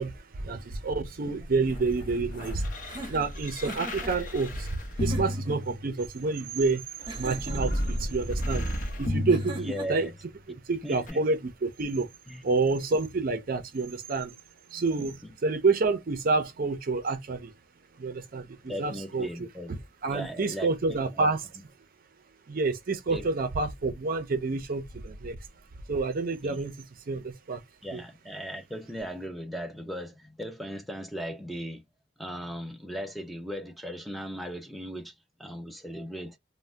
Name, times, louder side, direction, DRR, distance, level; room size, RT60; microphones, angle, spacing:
voice 1, 0.0-2.7 3.1-10.1 10.7-12.1 12.4-14.3 14.7-15.2 15.4-17.5 18.0-21.4 22.5-25.4 25.9-26.7 27.1-27.6 27.9-28.0, right 3 dB, 50° right, 0.5 m, -28 dB
sound 1, 1.4-6.3 7.0-10.3 11.1-11.2, equal, 45° left, 0.8 m, -33 dB
sound 2, 2.9-4.1 5.0-5.6 7.1-7.8 9.3-10.1, right 2 dB, 25° right, 0.8 m, -40 dB
voice 2, 9.6-10.1 10.8-11.2 12.3-12.4 15.0-15.3 18.7-19.7 20.1-21.3 23.1-23.3 26.4-26.6 27.8-31.8 32.2-35.1 35.4-36.4, equal, ahead, 0.5 m, -38 dB
2.6 x 2.1 x 3.2 m
head